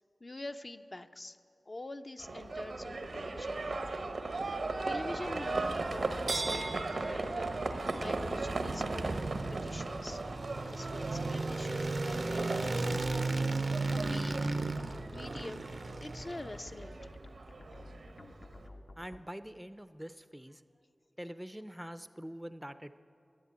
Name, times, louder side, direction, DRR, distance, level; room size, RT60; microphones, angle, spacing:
voice 1, 0.2-1.4 1.7-4.1 4.8-7.5 8.0-10.2 10.6-13.3 13.9-14.4 15.1-15.7 16.0-17.1, left 2 dB, 45° left, 7 dB, 0.6 m, -45 dB
Livestock farm animals working animals, 2.2-18.7, right 3 dB, 80° right, 0.9 m, -37 dB
sound 1, 2.8-19.2, left 2 dB, 65° left, 1.0 m, -51 dB
sound 2, 8.6-16.8, right 3 dB, 60° right, 0.6 m, -35 dB
voice 2, 19.0-20.6 21.2-23.0, equal, 10° right, 12 dB, 0.5 m, -45 dB
11.0 x 10.5 x 9.0 m, 2.6 s
cardioid pair, 40°, 0 cm